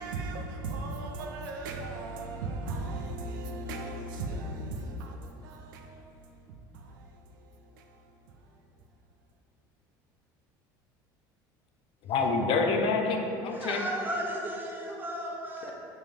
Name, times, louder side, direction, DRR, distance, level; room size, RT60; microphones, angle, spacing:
voice 1, 0.0-8.6, right 2 dB, 85° right, 0.6 m, -38 dB
voice 2, 12.0-13.9, left 4 dB, 60° left, 0.7 m, -27 dB
voice 3, 13.5-15.7, right 1 dB, 20° right, 1.2 m, -34 dB
6.2 x 4.9 x 3.5 m
supercardioid pair, 90°, 10 cm